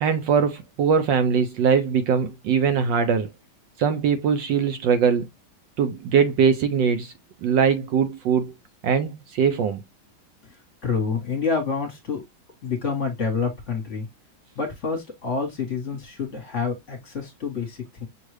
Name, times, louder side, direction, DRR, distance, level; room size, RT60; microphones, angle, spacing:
voice 1, 0.0-3.3 3.8-5.3 5.8-7.1 7.4-8.5 8.8-9.8, right 6 dB, 70° right, 1.2 m, -21 dB
voice 2, 10.8-12.2 12.6-14.1 14.6-18.1, left 5 dB, 40° left, 1.4 m, -28 dB
6.3 x 2.3 x 3.2 m
omnidirectional pair, 2.3 m